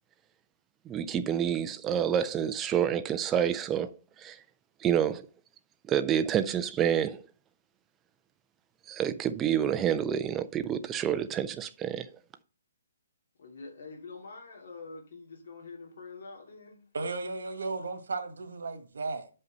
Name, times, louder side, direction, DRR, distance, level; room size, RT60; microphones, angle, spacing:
voice 1, 0.9-4.4 4.8-5.3 5.9-7.3 8.9-12.1, right 9 dB, 10° right, 0.3 m, -28 dB
voice 2, 13.4-16.8, left 4 dB, 55° left, 2.6 m, -46 dB
voice 3, 16.9-19.3, right 3 dB, 85° right, 1.7 m, -35 dB
5.4 x 5.3 x 6.4 m
hypercardioid pair, 170°, 0 cm